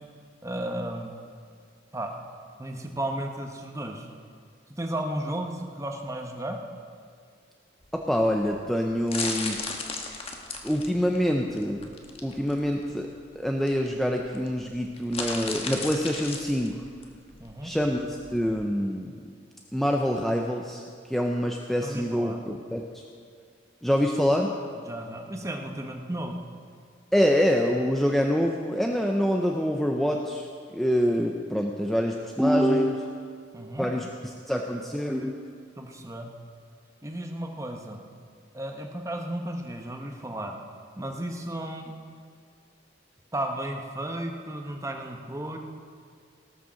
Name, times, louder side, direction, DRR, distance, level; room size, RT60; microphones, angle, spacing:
voice 1, 0.4-1.1 1.9-2.1 2.6-4.1 4.8-6.6 17.4-17.7 21.8-22.4 24.9-26.4 33.5-33.9 35.8-36.3 37.0-38.0 38.5-40.6 41.0-41.9 43.3-45.6, right 1 dB, 15° right, 3 dB, 1.0 m, -34 dB
sound 1, 7.8-18.6, left 4 dB, 30° left, 1.2 m, -36 dB
voice 2, 7.9-9.6 10.6-11.9 12.2-13.1 13.4-16.8 17.6-19.2 19.7-20.8 21.1-23.0 23.8-24.5 27.1-30.5 30.7-33.0 33.8-34.1 34.5-35.3, equal, ahead, 1 dB, 0.6 m, -25 dB
18.5 x 6.6 x 6.3 m, 2.2 s
head